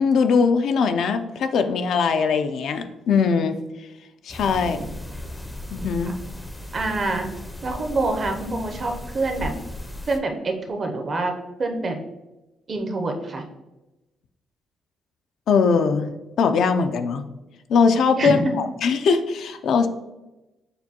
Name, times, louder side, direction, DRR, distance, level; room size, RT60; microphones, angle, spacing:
voice 1, 0.0-3.6 4.2-4.9 5.7-6.2 15.5-16.1 16.4-17.2 17.7-19.9, left 5 dB, 70° left, 8 dB, 0.3 m, -21 dB
sound 1, 4.3-10.2, left 1 dB, 10° left, 0.5 m, -36 dB
voice 2, 4.5-4.9 6.1-6.2 6.7-7.3 7.6-9.5 10.1-12.0 12.7-13.4 18.2-18.5, right 2 dB, 40° right, 4 dB, 0.6 m, -26 dB
6.6 x 2.2 x 2.8 m, 1.0 s
cardioid pair, 90°, 0 cm